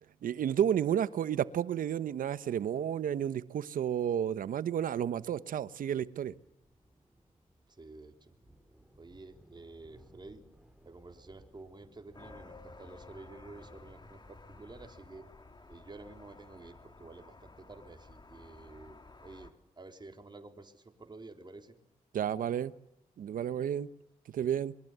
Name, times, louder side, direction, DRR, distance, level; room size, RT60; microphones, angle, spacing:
voice 1, 0.2-6.3 22.1-22.7 23.2-23.9 24.3-24.7, right 9 dB, 75° right, 1.1 m, -31 dB
sound 1, 6.0-14.3, right 1 dB, 5° right, 5.7 m, -62 dB
voice 2, 7.7-8.3 9.0-10.4 10.8-15.3 15.7-21.7 24.4-24.5, right 3 dB, 30° right, 3.8 m, -51 dB
sound 2, 12.1-19.5, left 3 dB, 30° left, 3.5 m, -53 dB
27.0 x 22.5 x 8.1 m
cardioid pair, 60°, 14 cm